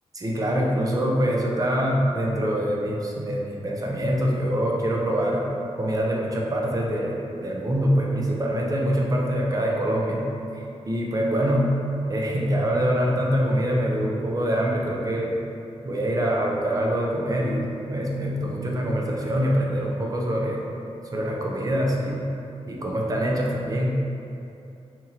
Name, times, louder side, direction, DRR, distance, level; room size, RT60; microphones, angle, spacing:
voice 1, 0.1-5.5 5.8-11.8 12.1-15.4 15.8-20.6 21.1-22.3 22.7-24.0, equal, 30° right, -1 dB, 0.5 m, -24 dB
2.9 x 2.6 x 4.1 m, 2.7 s
wide cardioid pair, 120°, 11 cm